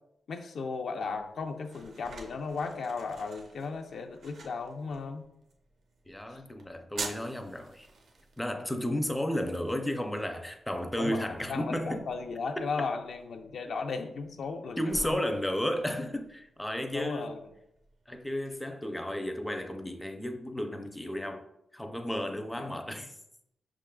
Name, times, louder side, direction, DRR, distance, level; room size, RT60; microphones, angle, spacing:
voice 1, 0.3-5.2 11.0-15.2 16.9-17.4 22.6-22.7, left 4 dB, 70° left, 0.4 m, -36 dB
sound 1, 1.0-18.5, right 3 dB, 75° right, 0.6 m, -49 dB
voice 2, 6.1-7.9 8.4-12.0 12.6-12.7 14.8-17.4 18.1-21.5 21.7-23.1, equal, 5° left, 0.4 m, -33 dB
5.8 x 3.6 x 2.3 m
wide cardioid pair, 115°, 0 cm